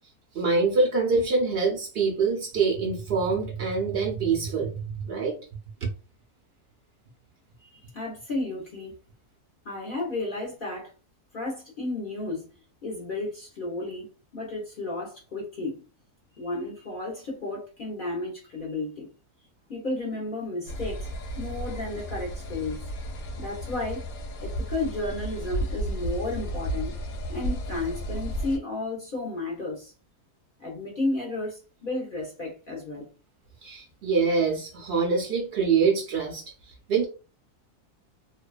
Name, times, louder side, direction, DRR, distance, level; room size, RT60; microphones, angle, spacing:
voice 1, 0.3-5.3 33.6-36.4 36.9-37.1, right 4 dB, 65° right, 0.6 m, -25 dB
voice 2, 7.6-8.9 9.6-10.9 11.3-12.4 12.8-14.1 14.3-15.8 16.3-19.1 19.7-21.1 21.4-22.8 23.3-24.1 24.4-26.9 27.3-29.9 30.6-33.1, left 2 dB, 50° left, 0.6 m, -33 dB
sound 1, 20.7-28.6, right 1 dB, 70° left, 1.0 m, -33 dB
2.6 x 2.2 x 2.3 m
omnidirectional pair, 1.6 m